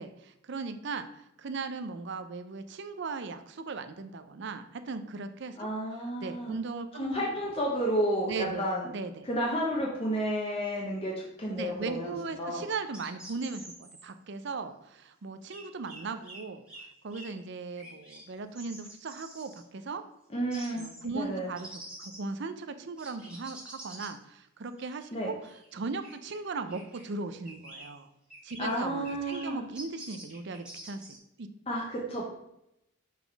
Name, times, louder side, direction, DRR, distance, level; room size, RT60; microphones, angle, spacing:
voice 1, 0.0-5.7 6.2-7.3 8.2-8.7 8.9-9.3 11.5-16.6 17.0-20.0 20.4-21.7 22.0-28.1 28.4-31.5, right 4 dB, 60° right, 9 dB, 0.5 m, -38 dB
voice 2, 5.6-6.5 6.9-8.9 9.2-12.1 12.4-12.6 20.3-21.5 25.1-25.3 28.6-29.6 31.7-32.2, equal, 30° left, -3 dB, 0.9 m, -31 dB
sound 1, 12.9-14.0 15.5-16.4 16.7-16.8 17.1-17.3 17.7-18.2 18.5-19.6 20.5-21.0 21.6-22.3 23.0-24.1 24.8-25.1 25.4-25.7 26.0-26.4 26.7-27.0 27.4-27.9 28.3-28.7 29.0-29.5 29.7-31.2, right 1 dB, 5° right, 1.8 m, -47 dB
5.8 x 4.0 x 4.5 m, 0.83 s
head